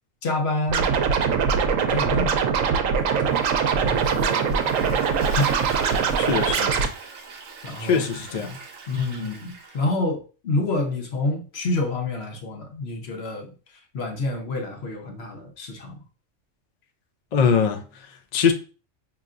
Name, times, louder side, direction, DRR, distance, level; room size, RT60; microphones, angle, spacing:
voice 1, 0.2-0.9 1.8-2.6 3.0-3.4 3.8-5.5 7.6-8.6 8.9-16.0, left 2 dB, 55° left, 1.1 m, -29 dB
Scratching (performance technique), 0.7-6.9, right 6 dB, 80° right, 1.0 m, -22 dB
Toilet flush, 3.1-9.9, right 5 dB, 60° right, 1.0 m, -38 dB
voice 2, 6.2-6.7 7.8-8.5 17.3-17.8 18.3-18.5, left 6 dB, 70° left, 0.4 m, -21 dB
5.4 x 2.9 x 2.4 m
omnidirectional pair, 1.4 m